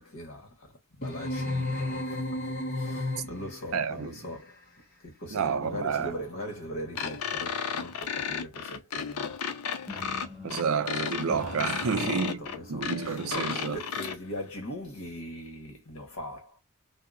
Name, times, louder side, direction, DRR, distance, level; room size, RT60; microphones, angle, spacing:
voice 1, 0.0-4.6 5.0-9.4 9.7-9.8 11.9-16.6, equal, 65° left, 1.2 m, -41 dB
sound 1, 1.0-3.6, left 1 dB, 40° left, 0.8 m, -32 dB
voice 2, 3.7-4.1 5.3-6.1 10.4-12.4 12.7-13.8, right 6 dB, 70° right, 0.4 m, -29 dB
sound 2, 5.6-8.6 9.9-14.0, left 2 dB, 5° right, 0.6 m, -46 dB
sound 3, 7.0-14.2, left 7 dB, 90° left, 0.5 m, -33 dB
2.7 x 2.0 x 2.5 m
head